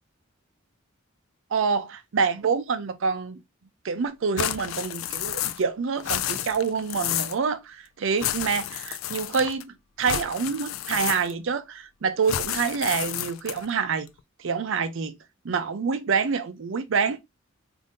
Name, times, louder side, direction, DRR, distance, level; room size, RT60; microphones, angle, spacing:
voice 1, 1.5-3.4 3.8-14.1 14.4-15.2 15.4-17.2, right 5 dB, 65° right, 0.5 m, -27 dB
sound 1, 4.4-5.7 6.0-7.4 8.2-9.6 10.0-11.5 12.2-13.7, left 11 dB, 70° left, 0.3 m, -31 dB
2.6 x 2.6 x 3.5 m
head